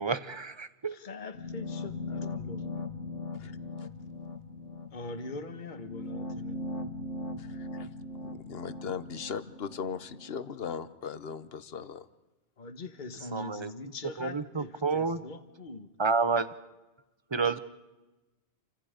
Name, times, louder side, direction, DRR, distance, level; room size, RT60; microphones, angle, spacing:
voice 1, 0.0-1.0 13.3-13.7 14.2-15.2 16.0-16.5 17.3-17.6, right 4 dB, 25° right, 13 dB, 1.0 m, -29 dB
voice 2, 0.9-2.9 4.9-6.7 12.6-15.9, left 3 dB, 45° left, 9 dB, 1.5 m, -42 dB
sound 1, 1.3-10.3, left 2 dB, 85° left, 1.9 m, -39 dB
voice 3, 3.3-3.9 7.4-7.9 8.2-12.1, left 6 dB, 60° left, 14 dB, 1.2 m, -39 dB
30.0 x 25.5 x 5.2 m, 1.1 s
omnidirectional pair, 1.2 m